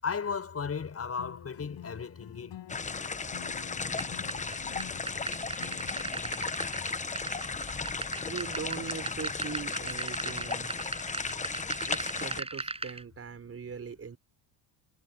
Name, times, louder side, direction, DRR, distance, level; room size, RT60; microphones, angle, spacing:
voice 1, 0.0-2.6, left 6 dB, 30° left, 7.4 m, -35 dB
sound 1, 1.2-6.1, left 13 dB, 75° left, 5.8 m, -48 dB
sound 2, 2.7-12.4, left 4 dB, 15° left, 0.9 m, -35 dB
sound 3, 4.0-13.0, right 2 dB, 15° right, 7.4 m, -39 dB
voice 2, 8.2-10.7 11.9-14.2, right 6 dB, 30° right, 4.7 m, -40 dB
cardioid pair, 135°, 44 cm